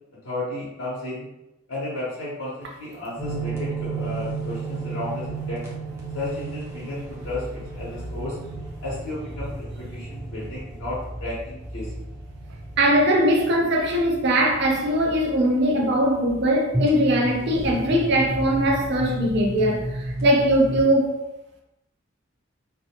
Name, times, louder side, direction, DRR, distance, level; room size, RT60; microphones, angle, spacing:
voice 1, 0.2-1.3 1.7-5.6 6.1-8.4 8.8-12.0, left 2 dB, 85° left, 0.8 m, -33 dB
sound 1, 3.2-20.8, right 2 dB, 15° right, 0.6 m, -33 dB
voice 2, 12.8-21.1, right 1 dB, 55° right, 0.5 m, -21 dB
2.6 x 2.0 x 2.8 m
head